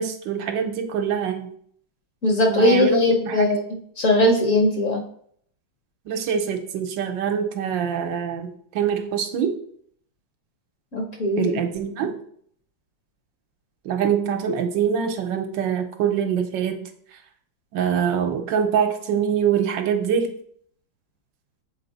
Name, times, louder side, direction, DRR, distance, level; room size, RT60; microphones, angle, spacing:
voice 1, 0.0-1.5 2.5-3.5 6.1-8.5 8.7-9.5 11.4-12.2 13.8-16.9 17.7-20.3, right 7 dB, 75° right, 5 dB, 1.4 m, -24 dB
voice 2, 2.2-5.0 10.9-11.6, left 1 dB, 45° left, 1 dB, 1.2 m, -20 dB
7.2 x 4.2 x 4.0 m, 0.63 s
omnidirectional pair, 2.1 m